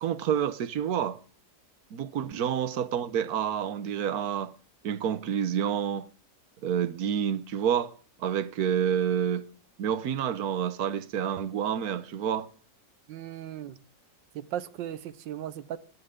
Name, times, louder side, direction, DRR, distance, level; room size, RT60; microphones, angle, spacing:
voice 1, 0.0-1.2 1.9-4.5 4.8-6.1 6.6-7.9 8.2-9.4 9.8-12.5, right 9 dB, 60° right, 1.3 m, -28 dB
voice 2, 13.1-13.8 14.3-15.8, right 11 dB, 80° right, 1.6 m, -37 dB
27.5 x 10.0 x 3.8 m
omnidirectional pair, 1.9 m